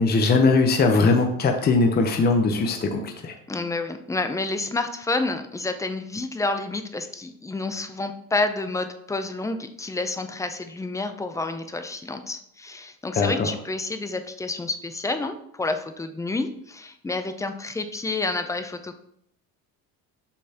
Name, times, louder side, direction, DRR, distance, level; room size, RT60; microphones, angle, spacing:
voice 1, 0.0-3.3 13.1-13.5, left 3 dB, 30° left, 4 dB, 0.7 m, -20 dB
voice 2, 3.5-18.9, left 2 dB, 10° left, 8 dB, 0.4 m, -29 dB
6.8 x 5.4 x 2.8 m, 0.72 s
cardioid pair, 130°, 35 cm